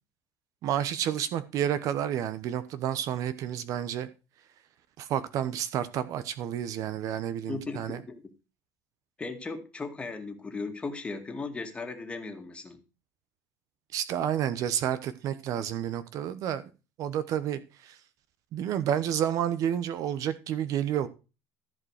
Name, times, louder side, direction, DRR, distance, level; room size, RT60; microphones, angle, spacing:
voice 1, 0.6-4.1 5.0-8.0 13.9-16.6 17.0-18.0 18.5-21.1, right 10 dB, 55° right, 1.0 m, -30 dB
voice 2, 7.5-8.2 9.2-12.8, left 3 dB, 15° left, 2.2 m, -37 dB
14.5 x 5.2 x 6.5 m
cardioid pair, 135°, 7 cm